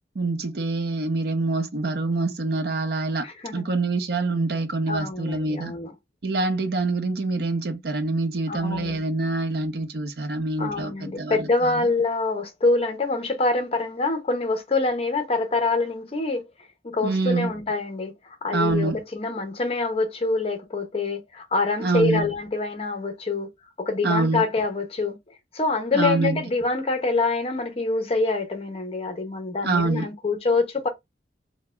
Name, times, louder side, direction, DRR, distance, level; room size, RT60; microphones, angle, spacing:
voice 1, 0.1-3.3 3.5-5.7 6.2-11.9 17.0-17.5 18.5-19.0 21.8-22.3 24.0-24.4 25.9-26.4 29.6-30.1, right 3 dB, 55° right, 0.6 m, -25 dB
voice 2, 3.2-3.6 4.9-5.9 8.5-9.0 10.6-16.5 16.8-23.5 23.8-25.2 25.5-30.9, left 3 dB, 30° left, 0.6 m, -25 dB
4.6 x 2.1 x 2.2 m
head